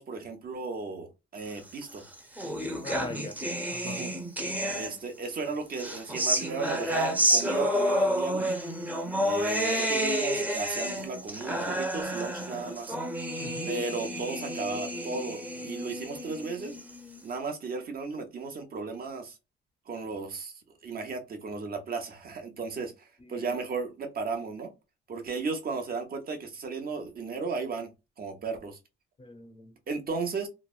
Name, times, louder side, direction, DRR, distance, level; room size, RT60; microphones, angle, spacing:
voice 1, 0.0-2.0 3.8-4.1 4.7-8.5 9.2-13.0 13.7-16.7 17.2-19.3 19.9-20.5 20.8-24.7 25.1-27.9 28.2-28.8 29.9-30.5, right 4 dB, 50° right, 1.1 m, -35 dB
sound 1, 1.8-5.2 5.7-17.2, equal, 10° right, 0.8 m, -30 dB
voice 2, 2.8-3.4 3.7-4.0 13.4-13.7 23.2-23.5 29.2-29.7, left 2 dB, 25° left, 0.7 m, -41 dB
3.2 x 2.1 x 2.4 m
cardioid pair, 90°, 20 cm